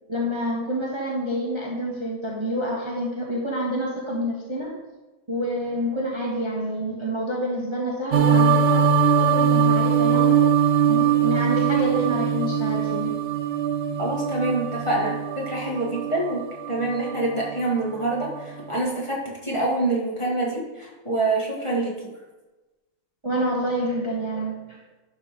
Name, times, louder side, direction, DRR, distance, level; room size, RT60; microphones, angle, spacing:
voice 1, 0.1-4.7 5.3-8.9 9.1-10.5 10.9-13.2 23.2-24.6, equal, 20° right, -3 dB, 1.4 m, -27 dB
sound 1, 8.1-17.6 18.1-18.6, right 7 dB, 60° right, 0.8 m, -22 dB
voice 2, 14.0-21.9, right 2 dB, 20° left, -4 dB, 2.0 m, -26 dB
11.5 x 4.5 x 5.2 m, 1.1 s
omnidirectional pair, 1.4 m